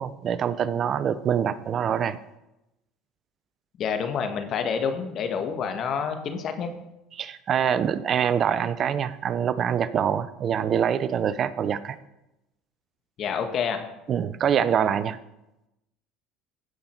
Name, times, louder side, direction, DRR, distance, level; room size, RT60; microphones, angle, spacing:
voice 1, 0.0-2.2 7.2-12.0 14.1-15.2, right 8 dB, 45° right, 15 dB, 0.6 m, -25 dB
voice 2, 3.8-6.7 13.2-13.8, left 6 dB, 50° left, 6 dB, 1.6 m, -28 dB
16.0 x 5.6 x 4.5 m, 0.92 s
supercardioid pair, 90°, 0 cm